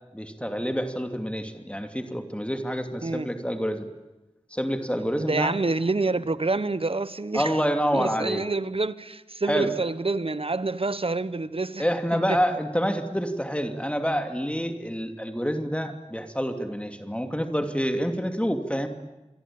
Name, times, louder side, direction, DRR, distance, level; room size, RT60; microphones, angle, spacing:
voice 1, 0.1-3.9 4.5-5.6 7.3-8.4 9.5-9.7 11.8-18.9, equal, 10° left, 2.8 m, -27 dB
voice 2, 5.2-7.5 7.9-11.9, right 3 dB, 55° right, 1.2 m, -27 dB
28.0 x 22.5 x 8.9 m
wide cardioid pair, 50°, 12 cm